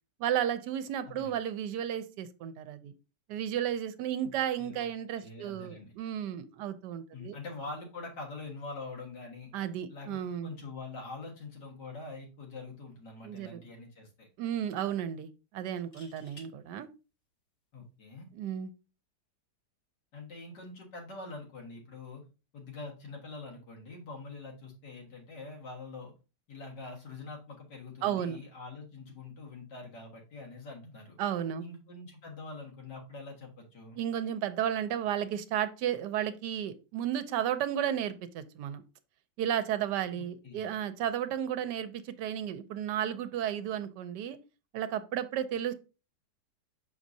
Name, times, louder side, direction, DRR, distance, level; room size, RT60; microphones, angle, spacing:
voice 1, 0.2-2.9 3.3-7.4 9.5-10.5 13.2-13.6 14.4-16.9 18.3-18.7 28.0-28.4 31.2-31.7 34.0-38.8 39.4-44.4 44.7-45.7, right 10 dB, 80° right, 12 dB, 1.2 m, -33 dB
voice 2, 1.1-1.4 4.2-4.3 4.6-4.9 5.2-5.9 7.1-9.5 9.9-14.3 17.7-18.3 20.1-22.2 22.5-26.1 26.5-31.2 31.6-34.0 40.1-40.7, left 3 dB, 80° left, 0 dB, 2.2 m, -44 dB
sound 1, 15.7-16.5 18.3-18.5, left 2 dB, 35° left, 1.7 m, -55 dB
6.1 x 5.7 x 2.7 m, 0.31 s
omnidirectional pair, 1.8 m